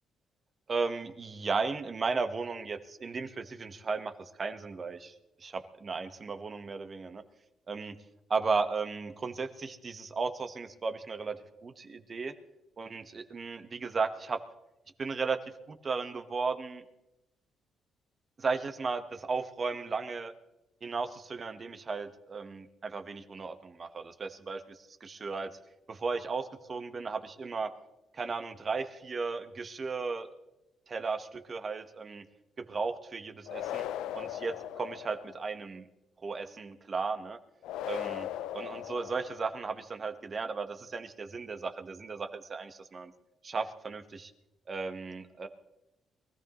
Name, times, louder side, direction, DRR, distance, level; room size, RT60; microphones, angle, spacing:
voice 1, 0.7-5.1 5.4-7.2 7.7-7.9 8.3-12.3 12.8-14.4 15.0-15.4 15.7-16.8 18.4-20.3 20.8-25.5 25.9-27.7 28.1-30.3 30.9-32.2 32.6-33.8 34.1-35.8 36.2-37.4 37.9-38.3 38.5-43.1 43.4-44.3 44.7-45.5, right 4 dB, 40° right, 8 dB, 1.2 m, -35 dB
sound 1, 33.5-35.5 37.6-39.7, left 12 dB, 90° left, 0.4 m, -38 dB
23.5 x 14.5 x 3.1 m, 0.92 s
cardioid pair, 90°, 0 cm